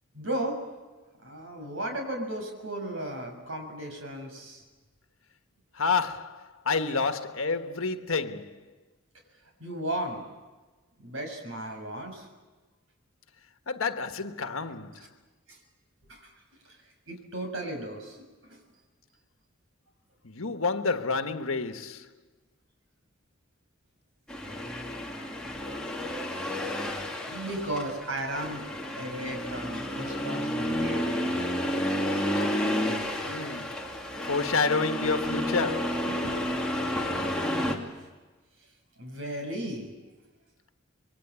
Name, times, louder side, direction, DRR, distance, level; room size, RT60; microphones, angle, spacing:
voice 1, 0.1-0.7 1.2-4.6 9.6-10.2 11.0-12.3 15.5-15.6 16.1-16.3 16.6-16.8 17.1-18.6 27.0-28.6 29.0-31.6 36.1-36.6 39.0-39.9, right 1 dB, 80° right, 6.6 m, -35 dB
voice 2, 5.7-8.7 13.7-15.1 20.2-22.1 33.2-33.9 34.2-36.1, left 4 dB, 85° left, 1.5 m, -29 dB
Accelerating revving vroom, 24.3-37.8, left 1 dB, 5° left, 2.7 m, -31 dB
26.5 x 23.0 x 8.5 m
head